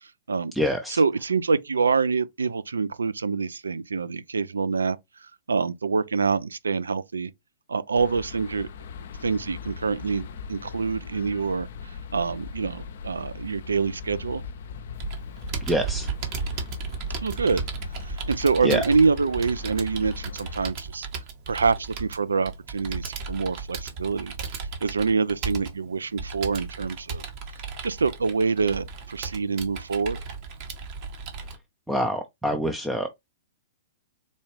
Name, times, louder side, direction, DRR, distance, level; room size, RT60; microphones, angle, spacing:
voice 1, 0.0-0.5 0.9-5.0 5.2-7.3 7.7-8.7 9.2-11.7 12.1-14.4 17.2-17.6 18.0-21.1 21.5-27.2 27.8-30.2, right 4 dB, 75° right, 0.3 m, -26 dB
voice 2, 0.5-1.0 15.6-16.1 18.6-18.8 31.9-33.1, equal, 5° right, 0.4 m, -25 dB
sound 1, 7.9-20.6, left 6 dB, 60° left, 0.4 m, -40 dB
Computer keyboard, 15.0-31.6, right 5 dB, 40° right, 0.9 m, -35 dB
3.9 x 2.4 x 3.1 m
figure-of-eight pair, 110°, 0 cm